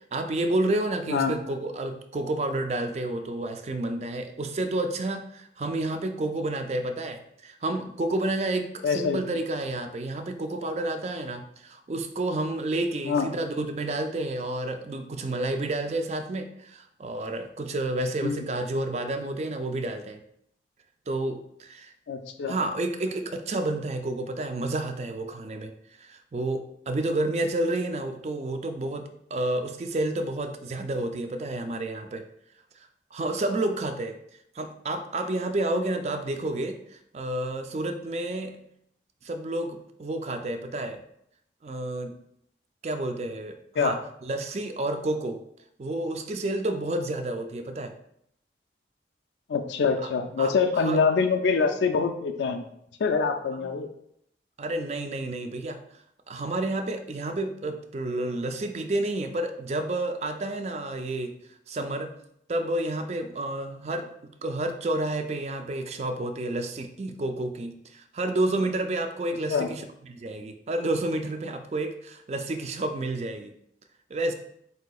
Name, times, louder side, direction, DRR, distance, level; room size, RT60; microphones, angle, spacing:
voice 1, 0.1-20.2 21.1-21.9 22.5-25.7 26.0-32.3 33.1-34.2 34.6-38.6 39.2-41.0 41.6-42.1 42.8-45.4 45.8-47.9 50.0-50.1 50.4-51.0 53.5-53.7 54.6-55.8 56.3-61.3 61.7-62.1 62.5-64.1 64.4-73.5 74.1-74.3, right 2 dB, 35° right, 7 dB, 0.4 m, -30 dB
voice 2, 8.8-9.2 13.1-13.3 18.2-18.4 22.1-22.5 43.8-43.9 49.5-52.6 53.0-53.9 69.5-69.7, left 5 dB, 85° left, 6 dB, 0.4 m, -25 dB
7.8 x 2.7 x 2.3 m, 0.72 s
head